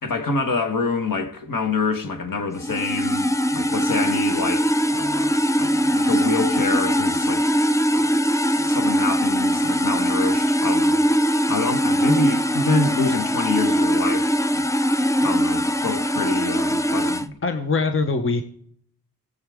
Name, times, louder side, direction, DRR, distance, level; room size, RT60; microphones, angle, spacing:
voice 1, 0.0-7.6 7.9-11.0 11.5-14.7 15.2-17.3, left 3 dB, 60° left, 1.5 m, -26 dB
sound 1, 2.6-17.3, equal, 10° left, 0.4 m, -21 dB
voice 2, 17.4-18.4, left 3 dB, 35° left, 0.9 m, -22 dB
19.0 x 7.8 x 3.6 m
wide cardioid pair, 115°, 37 cm